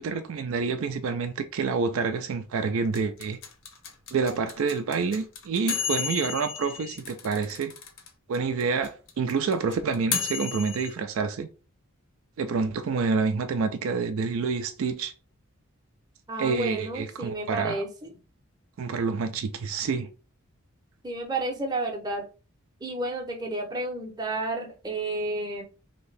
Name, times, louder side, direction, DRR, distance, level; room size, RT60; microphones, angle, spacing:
voice 1, 0.0-3.4 4.1-7.7 8.3-11.5 12.4-15.1 16.4-17.8 18.8-20.1, right 5 dB, 70° right, 0.4 m, -28 dB
sound 1, 2.9-8.1 8.3-8.4 8.6-10.9, left 7 dB, 65° left, 0.8 m, -32 dB
voice 2, 16.3-18.1 21.0-22.3 22.8-25.6, right 2 dB, 20° right, 0.7 m, -31 dB
2.8 x 2.6 x 3.2 m
head